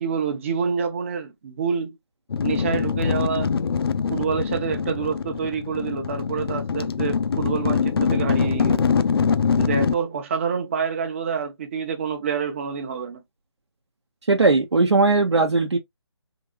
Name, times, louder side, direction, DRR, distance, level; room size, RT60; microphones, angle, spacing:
voice 1, 0.0-2.0 2.4-3.5 4.1-9.0 9.6-13.2, right 6 dB, 25° right, 0.8 m, -27 dB
sound 1, 2.3-9.9, left 6 dB, 55° left, 0.5 m, -23 dB
voice 2, 14.3-15.8, right 3 dB, 75° right, 0.8 m, -18 dB
3.8 x 2.8 x 2.4 m
figure-of-eight pair, 155°, 15 cm